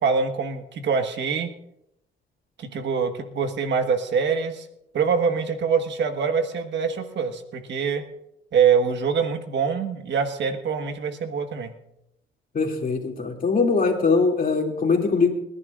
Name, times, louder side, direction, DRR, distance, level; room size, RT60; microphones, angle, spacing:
voice 1, 0.0-1.5 2.6-4.6 4.9-8.0 8.5-11.7, right 6 dB, 65° right, 7 dB, 1.5 m, -24 dB
voice 2, 12.5-15.3, left 4 dB, 45° left, 2 dB, 2.7 m, -21 dB
29.5 x 11.0 x 2.5 m, 0.82 s
cardioid pair, 90°, 20 cm